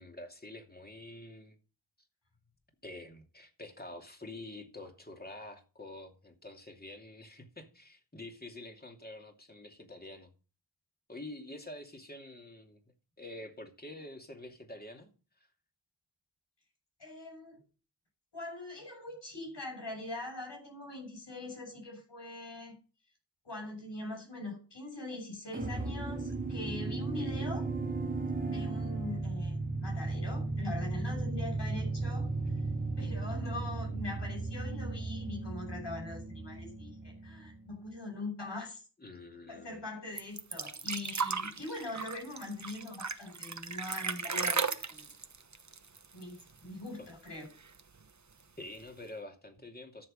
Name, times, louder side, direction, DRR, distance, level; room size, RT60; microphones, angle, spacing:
voice 1, 0.0-1.5 2.8-10.3 11.1-12.8 13.2-15.1 27.2-27.5 39.0-39.8 47.0-47.1 48.6-50.1, left 2 dB, 20° left, 2.7 m, -47 dB
voice 2, 17.0-17.6 18.3-22.8 23.4-27.7 28.4-32.3 33.0-38.8 39.5-45.1 46.1-47.5, left 2 dB, 85° left, 7.0 m, -42 dB
sound 1, 25.5-37.8, right 3 dB, 20° right, 1.9 m, -35 dB
sound 2, 40.2-46.6 46.9-47.0 47.3-48.0 48.8-48.9, right 5 dB, 45° right, 1.1 m, -36 dB
13.5 x 7.1 x 5.3 m
wide cardioid pair, 80°, 41 cm